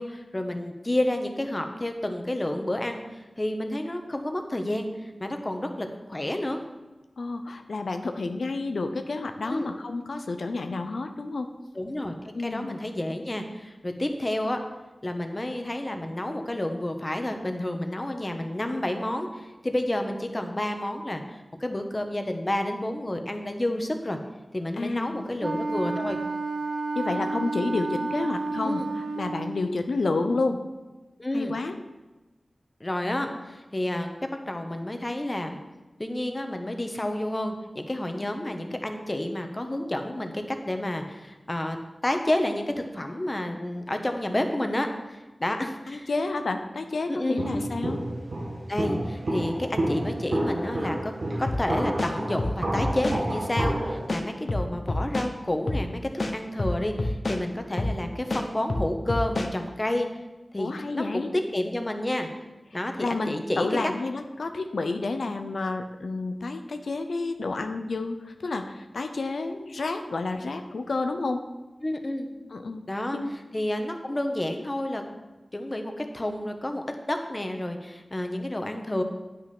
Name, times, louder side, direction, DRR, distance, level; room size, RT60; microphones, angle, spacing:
voice 1, 0.0-6.6 9.4-9.7 11.7-12.1 12.4-14.6 15.0-24.2 24.5-26.2 28.6-28.9 31.2-31.5 32.8-34.1 34.5-35.6 36.0-41.8 42.0-46.1 47.1-47.5 48.7-51.1 51.4-56.0 56.3-60.1 60.5-61.3 61.5-62.3 62.7-63.9 71.8-72.3 72.9-73.2 73.5-75.0 75.5-79.0, left 1 dB, 30° left, 5 dB, 1.2 m, -30 dB
voice 2, 7.2-11.5 12.3-12.8 24.7-25.2 26.9-30.6 31.3-31.8 45.9-48.0 60.6-61.3 62.7-71.4 72.5-73.3, left 3 dB, 90° left, 7 dB, 0.7 m, -30 dB
Wind instrument woodwind instrument, 25.4-29.6, right 3 dB, 55° right, 1.0 m, -31 dB
Walk footsteps, 47.4-54.1, right 1 dB, 80° right, 1.6 m, -29 dB
sound 1, 51.5-51.6 52.0-53.2 53.6-53.7 54.1-55.3 55.7-55.8 56.2-57.4 57.8-58.0 58.3-59.5, left 2 dB, 60° left, 1.0 m, -28 dB
9.9 x 6.3 x 6.0 m, 1.1 s
wide cardioid pair, 55°, 0 cm